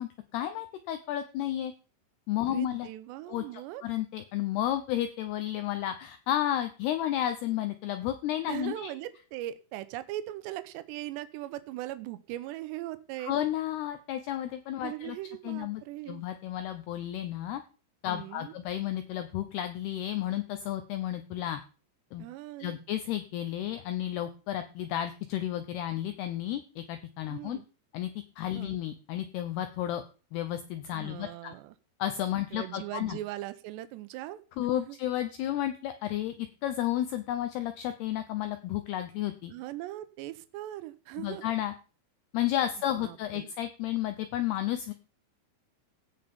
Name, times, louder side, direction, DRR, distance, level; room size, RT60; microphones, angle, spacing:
voice 1, 0.0-1.7 2.3-2.9 3.3-8.9 13.2-15.2 15.4-15.8 16.1-17.6 18.0-21.6 22.1-22.3 22.6-27.6 27.9-28.1 28.4-30.0 30.3-31.5 32.0-33.2 34.6-36.3 36.6-39.5 41.2-41.7 42.3-44.9, left 12 dB, 85° left, 9 dB, 2.3 m, -32 dB
voice 2, 2.4-3.8 8.5-13.3 14.8-16.2 18.1-18.5 22.2-22.8 27.3-27.7 28.5-28.7 30.9-31.7 32.5-34.4 34.7-35.0 39.5-41.4 43.0-43.5, right 15 dB, 80° right, 13 dB, 2.6 m, -39 dB
16.5 x 5.7 x 5.3 m, 0.35 s
omnidirectional pair, 5.8 m